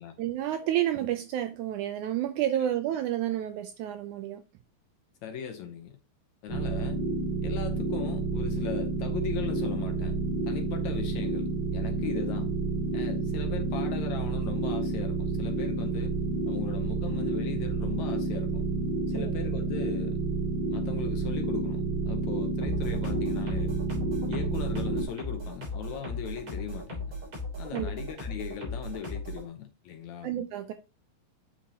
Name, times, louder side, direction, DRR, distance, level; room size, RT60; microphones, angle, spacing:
voice 1, 0.2-4.4 19.1-19.3 27.7-27.9 30.2-30.7, right 12 dB, 85° right, 1.7 m, -30 dB
voice 2, 5.2-6.0 6.4-7.0 7.4-10.2 10.4-12.6 12.9-16.2 16.5-18.6 19.1-20.2 20.7-23.8 24.3-27.1 27.6-30.3, left 8 dB, 70° left, 1.9 m, -39 dB
sound 1, 6.5-25.0, right 3 dB, 25° right, 3.6 m, -30 dB
sound 2, 22.6-29.4, left 2 dB, 45° right, 4.2 m, -37 dB
8.3 x 5.9 x 2.9 m
omnidirectional pair, 4.0 m